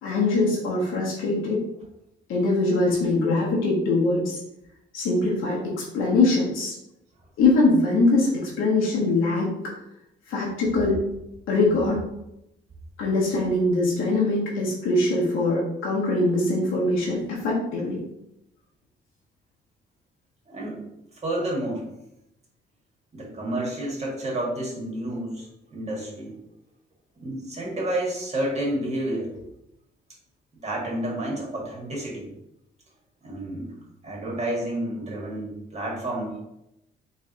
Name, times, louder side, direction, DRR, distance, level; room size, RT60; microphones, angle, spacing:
voice 1, 0.0-1.6 2.3-4.4 4.9-6.7 7.4-9.5 10.3-11.0 11.5-12.0 13.0-18.0, left 2 dB, 85° left, -5 dB, 1.2 m, -22 dB
voice 2, 20.5-20.8 21.2-21.8 23.1-25.4 25.7-26.3 27.2-29.3 30.6-32.2 33.2-33.7 34.0-36.4, right 1 dB, 35° right, -3 dB, 1.6 m, -30 dB
3.4 x 3.1 x 3.9 m, 0.84 s
cardioid pair, 90°, 20 cm